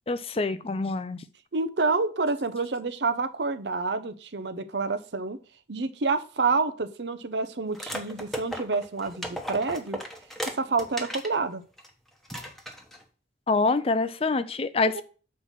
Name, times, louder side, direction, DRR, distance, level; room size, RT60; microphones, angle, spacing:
voice 1, 0.1-1.2 13.5-15.0, left 3 dB, 30° left, 13 dB, 0.5 m, -26 dB
voice 2, 1.5-5.4 5.7-10.0 10.5-11.6 14.9-15.0, right 4 dB, 65° right, 12 dB, 0.7 m, -28 dB
sound 1, 7.7-11.4 11.8-11.9 12.3-13.0, equal, ahead, 1.1 m, -36 dB
7.3 x 4.5 x 5.8 m, 0.38 s
head